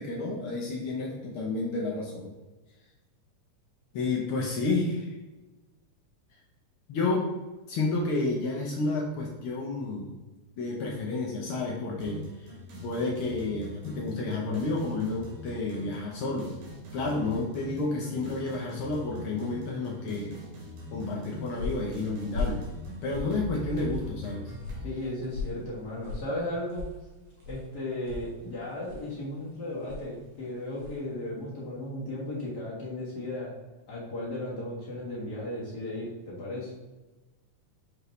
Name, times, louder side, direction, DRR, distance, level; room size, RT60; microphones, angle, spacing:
voice 1, 0.0-2.3 3.9-5.1 6.9-7.3 7.7-10.1 10.6-12.5 12.8-16.5 16.9-20.4 20.9-22.6 23.0-24.4, left 3 dB, 85° left, -3 dB, 1.2 m, -30 dB
sound 1, 12.0-24.9, left 1 dB, 85° right, 3.2 m, -43 dB
sound 2, 21.0-31.1, left 3 dB, 65° right, 2.6 m, -40 dB
voice 2, 24.8-26.9 27.4-33.5 33.9-36.7, left 1 dB, 40° left, -6 dB, 1.6 m, -35 dB
6.2 x 4.9 x 3.2 m, 1.1 s
omnidirectional pair, 3.6 m